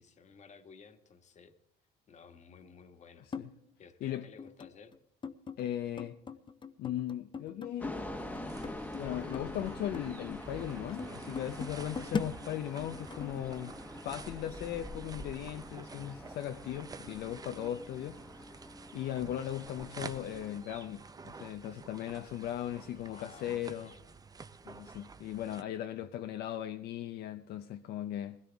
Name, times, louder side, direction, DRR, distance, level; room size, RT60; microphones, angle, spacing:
voice 1, 0.0-1.5 2.1-3.3 3.8-5.0 22.9-24.2, left 5 dB, 45° left, 1.5 m, -55 dB
sound 1, 3.3-3.5 4.4-5.0 5.2-5.7 6.0-9.6 9.9-12.3 12.8-13.6, left 5 dB, 30° left, 0.7 m, -41 dB
voice 2, 5.6-6.2 6.8-8.1 9.0-13.8 14.0-18.7 18.9-23.9 24.6-28.4, left 11 dB, 70° left, 0.6 m, -38 dB
sound 2, 7.7-25.6, right 4 dB, 20° right, 0.6 m, -50 dB
sound 3, 7.8-20.5, left 1 dB, 10° left, 1.1 m, -45 dB
21.5 x 16.5 x 3.5 m
cardioid pair, 110°, 17 cm